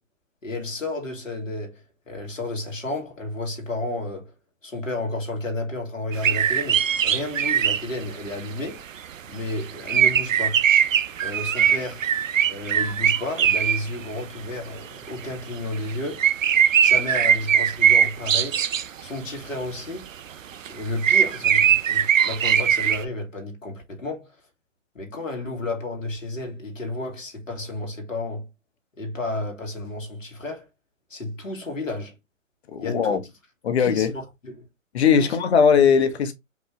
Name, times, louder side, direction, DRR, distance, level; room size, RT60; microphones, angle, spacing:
voice 1, 0.4-4.3 4.6-8.8 9.2-10.6 11.2-12.1 12.5-16.3 16.8-18.7 19.0-20.1 20.7-24.3 24.9-28.5 29.0-30.7 31.1-32.1 32.8-33.2 33.7-34.6 35.2-35.4 35.8-35.9, left 2 dB, 80° left, 2.5 m, -32 dB
sound 1, 6.1-7.9 9.7-14.0 15.9-16.0 16.2-19.0 20.7-20.8 21.0-23.1, right 9 dB, 80° right, 0.6 m, -20 dB
voice 2, 32.7-33.2 33.6-34.1 34.9-36.3, left 6 dB, 55° left, 1.3 m, -19 dB
5.2 x 3.2 x 3.2 m
figure-of-eight pair, 130°, 38 cm